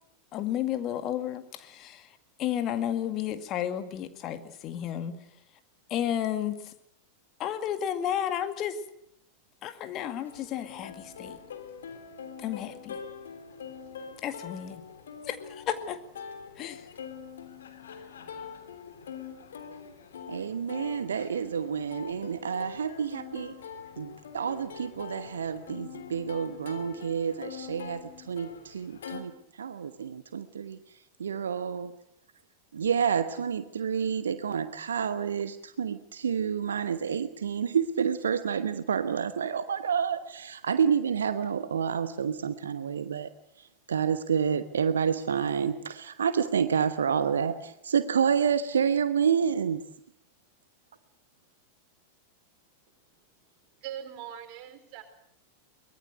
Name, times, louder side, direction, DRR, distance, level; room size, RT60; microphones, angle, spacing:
voice 1, 0.3-2.1 2.4-5.2 5.9-6.7 7.4-8.8 9.6-11.4 12.4-13.0 14.2-14.8 15.2-16.0 16.6-16.8, left 10 dB, 35° left, 10 dB, 2.1 m, -32 dB
Plucked string instrument, 10.2-29.2, left 7 dB, 65° left, 3.1 m, -44 dB
voice 2, 20.3-23.5 24.0-29.3 29.6-30.8 31.2-31.9 32.7-43.3 43.9-49.8, right 7 dB, 70° right, 12 dB, 1.1 m, -29 dB
voice 3, 53.8-55.0, right 10 dB, 45° right, 7 dB, 4.3 m, -41 dB
23.5 x 21.0 x 8.0 m, 0.71 s
figure-of-eight pair, 90°, 0 cm